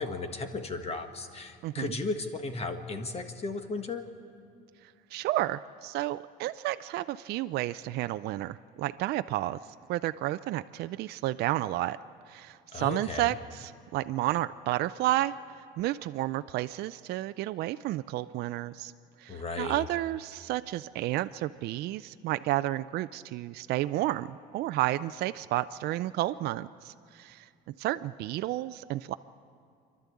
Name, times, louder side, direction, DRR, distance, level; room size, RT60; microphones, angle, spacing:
voice 1, 0.0-4.0 12.7-13.3 19.3-19.8, left 3 dB, 35° left, 7 dB, 1.5 m, -35 dB
voice 2, 1.6-1.9 5.1-9.6 9.9-12.0 12.3-15.3 15.8-18.9 19.2-27.5 27.8-29.1, right 15 dB, 60° right, 12 dB, 0.4 m, -31 dB
27.5 x 12.0 x 8.4 m, 2.3 s
cardioid pair, 120°, 18 cm